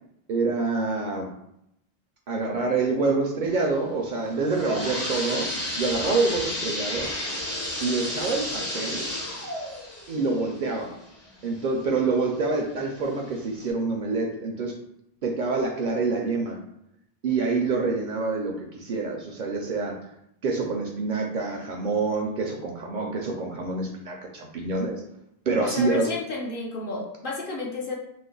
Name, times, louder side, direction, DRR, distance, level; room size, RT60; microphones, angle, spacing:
voice 1, 0.3-1.3 2.3-5.5 5.8-7.1 7.8-9.0 10.1-10.9 11.4-14.7 15.2-16.6 17.2-20.0 20.4-25.0 25.5-26.1, right 3 dB, 60° right, 1 dB, 0.6 m, -26 dB
sound 1, 4.2-11.8 12.3-12.4 13.2-13.3 13.7-13.8, left 1 dB, 20° left, 0.5 m, -32 dB
voice 2, 25.6-28.0, left 3 dB, 60° left, -1 dB, 0.8 m, -31 dB
3.1 x 2.0 x 3.8 m, 0.78 s
omnidirectional pair, 1.0 m